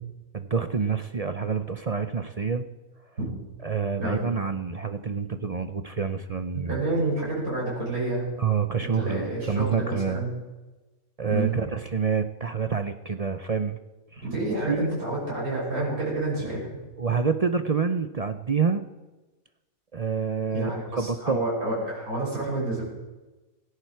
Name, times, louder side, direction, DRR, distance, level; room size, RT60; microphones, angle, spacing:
voice 1, 0.3-2.7 3.6-6.8 8.4-10.3 11.2-13.8 14.1-14.3 14.7-15.0 17.0-18.8 19.9-20.7 21.0-21.4, right 6 dB, 45° right, 9 dB, 0.5 m, -27 dB
voice 2, 6.5-8.3 8.8-10.3 11.3-11.5 14.2-16.7 20.5-22.8, right 2 dB, 85° right, -5 dB, 6.6 m, -29 dB
17.5 x 16.0 x 4.6 m, 1.1 s
omnidirectional pair, 1.5 m